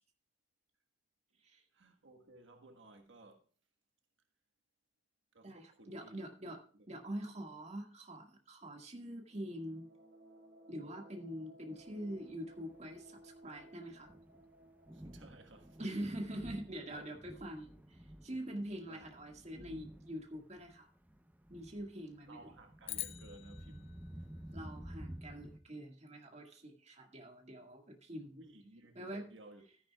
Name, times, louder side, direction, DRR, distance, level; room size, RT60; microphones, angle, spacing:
voice 1, 1.7-3.5 5.3-6.1 6.4-6.8 14.9-16.1 16.9-17.4 18.8-19.1 22.3-24.0 28.4-29.7, right 2 dB, 80° right, 1.5 m, -57 dB
voice 2, 5.4-6.6 6.9-9.9 10.7-14.1 15.8-20.9 21.5-22.4 24.5-28.4 29.0-29.3, right 1 dB, 35° right, 1.8 m, -44 dB
sound 1, 9.1-17.7, right 1 dB, 65° right, 3.5 m, -61 dB
Thunder, 11.9-25.6, right 1 dB, 10° right, 0.6 m, -52 dB
sound 2, 22.8-25.3, left 13 dB, 35° left, 0.5 m, -46 dB
13.5 x 10.5 x 2.3 m
head